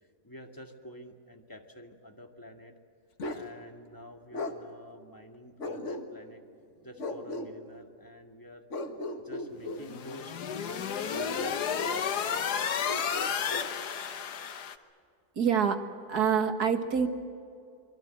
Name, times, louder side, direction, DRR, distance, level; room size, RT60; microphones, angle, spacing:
voice 1, 0.0-2.7 3.3-6.4 6.8-8.7 9.2-11.6, left 1 dB, 15° left, 3 dB, 2.1 m, -49 dB
Bark, 3.2-3.5 4.3-4.6 5.6-6.3 7.0-7.5 8.7-9.8 11.1-12.0 12.8-13.7, left 2 dB, 50° left, 2.0 m, -36 dB
sound 1, 9.7-14.7, left 7 dB, 85° left, 1.7 m, -32 dB
voice 2, 15.4-15.8 16.1-17.1, right 7 dB, 75° right, 7 dB, 2.3 m, -26 dB
25.5 x 24.0 x 7.9 m, 2.4 s
omnidirectional pair, 1.7 m